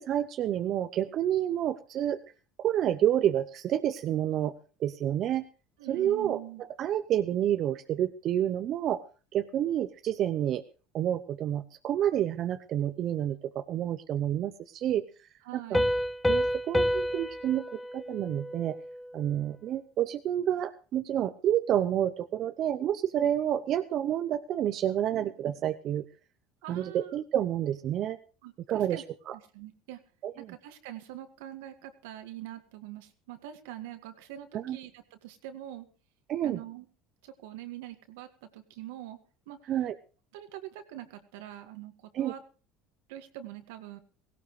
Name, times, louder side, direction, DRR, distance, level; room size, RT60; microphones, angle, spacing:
voice 1, 0.0-2.2 2.6-4.5 4.8-5.4 5.9-6.4 6.8-9.0 9.3-10.6 10.9-15.1 15.5-15.8 16.3-18.8 19.1-26.0 26.7-28.2 28.7-29.4 30.2-30.5 34.5-34.8 36.3-36.6 39.7-40.0 42.1-42.3, right 11 dB, 50° right, 10 dB, 0.7 m, -29 dB
voice 2, 5.8-6.6 15.5-15.9 26.6-27.1 28.4-29.0 29.3-30.0 30.4-35.9 36.4-36.9 37.2-39.2 39.5-39.6 40.3-42.4 43.1-44.0, right 13 dB, 80° right, 7 dB, 1.9 m, -44 dB
Piano, 15.7-19.2, equal, 10° left, 0.7 m, -29 dB
17.5 x 17.0 x 3.2 m, 0.37 s
supercardioid pair, 90°, 0 cm